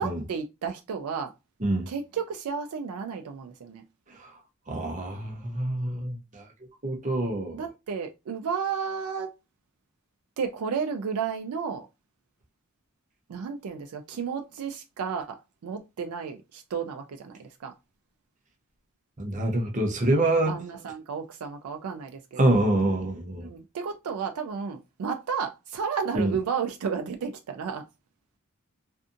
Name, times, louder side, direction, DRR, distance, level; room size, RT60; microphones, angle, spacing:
voice 1, 0.0-1.3 1.9-3.8 7.5-9.3 10.4-11.9 13.3-17.7 20.4-22.7 23.4-27.9, right 6 dB, 85° right, 0.4 m, -32 dB
voice 2, 4.7-6.4 6.8-7.6 19.2-20.6 22.4-23.5 26.1-26.3, right 1 dB, 35° right, 0.6 m, -26 dB
2.6 x 2.5 x 2.5 m
head